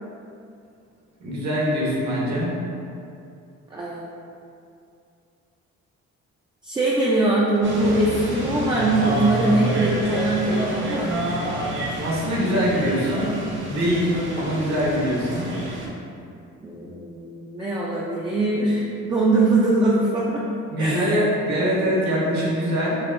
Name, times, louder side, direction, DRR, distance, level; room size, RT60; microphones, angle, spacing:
voice 1, 1.2-2.6 12.0-13.4 13.7-15.5 20.7-23.0, equal, 65° right, -5 dB, 1.1 m, -23 dB
voice 2, 3.7-4.0 6.6-11.2 16.6-20.4 20.8-21.0, right 2 dB, 15° right, -5 dB, 0.4 m, -22 dB
sound 1, 7.6-15.9, right 1 dB, 40° right, 0.8 m, -28 dB
5.4 x 2.1 x 2.6 m, 2.5 s
cardioid pair, 90°, 30 cm